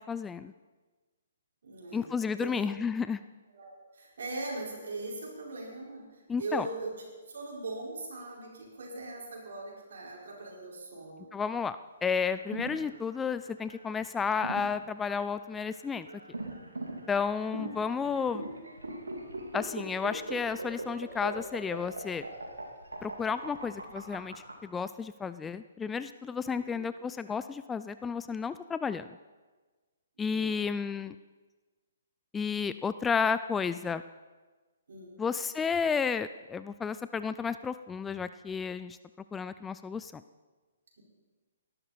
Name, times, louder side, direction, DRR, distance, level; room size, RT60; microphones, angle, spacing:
voice 1, 0.1-0.5 1.9-3.2 6.3-6.7 11.3-16.1 17.1-18.4 19.5-22.2 23.0-24.3 24.6-29.1 30.2-31.2 32.3-34.0 35.2-39.0 39.3-40.2, left 6 dB, 10° left, 13 dB, 0.3 m, -32 dB
voice 2, 1.6-2.6 3.5-6.9 7.3-11.3 18.0-18.3 26.5-26.8 30.3-30.6 34.9-35.2, right 3 dB, 65° right, -3 dB, 5.2 m, -40 dB
sound 1, 12.1-24.5, right 2 dB, 85° right, 2.4 m, -40 dB
19.0 x 12.0 x 4.3 m, 1.3 s
figure-of-eight pair, 130°, 0 cm